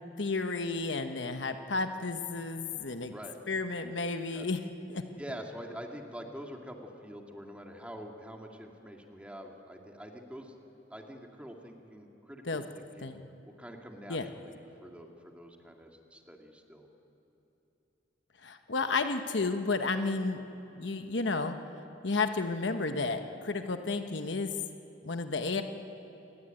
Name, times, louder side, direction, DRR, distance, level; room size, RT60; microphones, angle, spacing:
voice 1, 0.2-3.1 3.5-4.6 4.9-5.0 12.5-12.6 13.0-13.2 14.1-14.3 18.4-20.4 20.7-21.6 22.0-24.5 25.0-25.6, left 3 dB, 70° left, 7 dB, 1.2 m, -32 dB
voice 2, 5.2-10.6 10.9-13.1 13.6-16.9, equal, 5° right, 2 dB, 2.2 m, -46 dB
28.0 x 19.5 x 9.1 m, 2.9 s
head